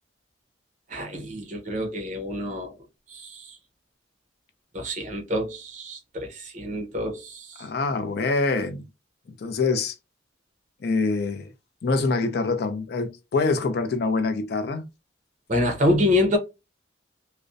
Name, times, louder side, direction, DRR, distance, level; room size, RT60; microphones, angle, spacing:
voice 1, 0.9-2.8 3.1-3.6 4.7-7.7 15.5-16.4, left 1 dB, 40° right, 0.7 m, -26 dB
voice 2, 7.6-8.8 9.4-10.0 10.8-11.5 11.8-14.8, left 3 dB, 55° left, 0.4 m, -25 dB
2.4 x 2.0 x 2.5 m
head